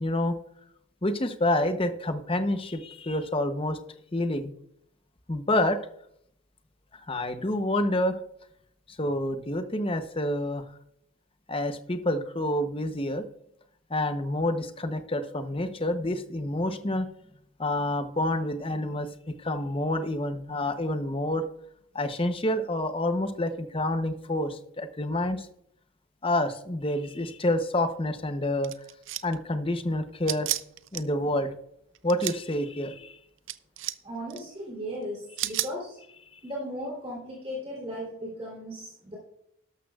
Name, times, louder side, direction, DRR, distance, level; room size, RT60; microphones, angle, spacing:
voice 1, 0.0-0.3 1.0-3.8 4.1-4.5 5.3-5.8 7.1-8.2 9.0-10.6 11.5-13.3 13.9-17.1 17.6-19.1 19.4-21.5 21.9-25.5 26.2-28.7 29.2-30.5 30.9-31.5 32.0-33.2, left 1 dB, 25° left, 9 dB, 0.7 m, -28 dB
sound 1, 28.6-29.4 30.3-31.0 31.9-32.4 33.5-34.0 34.3-34.4 35.4-35.7, right 14 dB, 60° right, 0.5 m, -31 dB
voice 2, 34.0-36.0 36.4-39.1, equal, 25° right, -5 dB, 3.2 m, -36 dB
12.5 x 12.5 x 2.4 m, 0.73 s
head